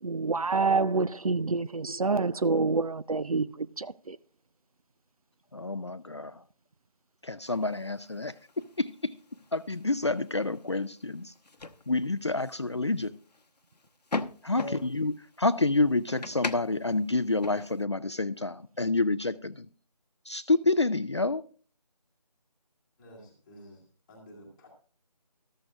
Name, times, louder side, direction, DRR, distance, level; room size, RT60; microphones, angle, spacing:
voice 1, 0.0-4.2, right 4 dB, 60° right, 0.5 m, -27 dB
voice 2, 5.5-6.4 7.2-8.3 8.8-9.1 9.5-11.3 11.9-13.2 14.4-19.7 20.3-21.4, left 2 dB, 45° left, 0.4 m, -28 dB
sound 1, 7.4-17.9, left 3 dB, 75° left, 1.0 m, -42 dB
voice 3, 14.5-14.8 23.0-23.8 24.1-24.7, equal, 5° left, 1.4 m, -45 dB
14.0 x 13.0 x 2.4 m
figure-of-eight pair, 170°, 21 cm